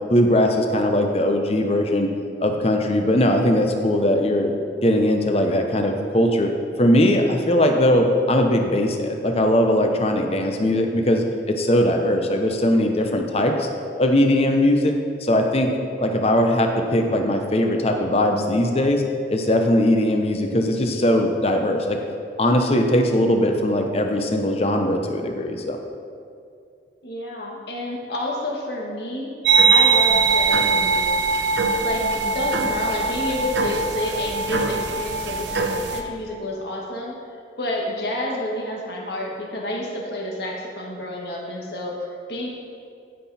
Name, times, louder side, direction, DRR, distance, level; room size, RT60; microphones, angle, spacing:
voice 1, 0.1-2.1 2.4-4.5 4.8-6.5 6.8-13.7 14.0-15.0 15.2-15.7 16.0-19.0 19.3-22.0 22.4-25.8, left 1 dB, 35° left, 4 dB, 0.8 m, -20 dB
voice 2, 27.0-29.3 29.7-31.1 31.8-37.1 37.6-42.5, left 1 dB, 65° left, -2 dB, 1.8 m, -29 dB
sound 1, 29.4-36.0, right 4 dB, 80° right, 0.9 m, -21 dB
15.0 x 5.8 x 4.2 m, 2.4 s
head